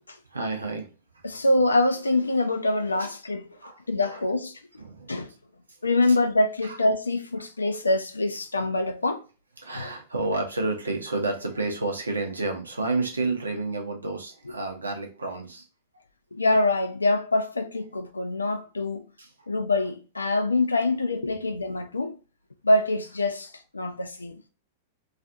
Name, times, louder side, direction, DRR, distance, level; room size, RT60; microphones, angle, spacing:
voice 1, 0.3-0.9 3.5-4.2 4.8-5.1 6.0-6.2 6.6-6.8 9.6-15.7 19.2-19.3, right 3 dB, 85° right, 0.7 m, -30 dB
voice 2, 1.2-3.5 3.9-4.5 5.1-5.3 5.8-9.2 16.3-19.0 19.5-22.2 22.6-24.3, left 2 dB, 85° left, 0.4 m, -24 dB
2.4 x 2.4 x 2.5 m
figure-of-eight pair, 95°, 0 cm